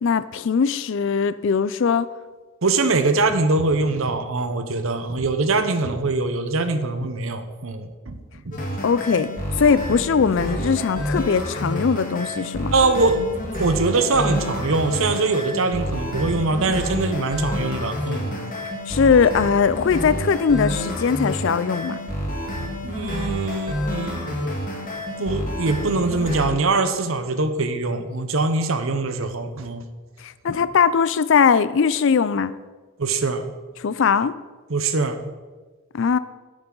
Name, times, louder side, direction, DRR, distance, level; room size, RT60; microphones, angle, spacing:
voice 1, 0.0-2.1 8.8-9.3 9.6-12.7 18.9-22.0 30.2-32.5 33.8-34.3 35.9-36.2, left 6 dB, 55° left, 15 dB, 0.4 m, -20 dB
voice 2, 2.6-8.6 12.7-13.3 13.6-18.4 22.8-24.5 25.2-29.8 30.5-30.6 33.0-33.5 34.7-35.2, right 3 dB, 65° right, 9 dB, 0.8 m, -23 dB
sound 1, 8.5-26.5, equal, 35° left, 1.6 m, -29 dB
10.5 x 8.9 x 3.9 m, 1.3 s
head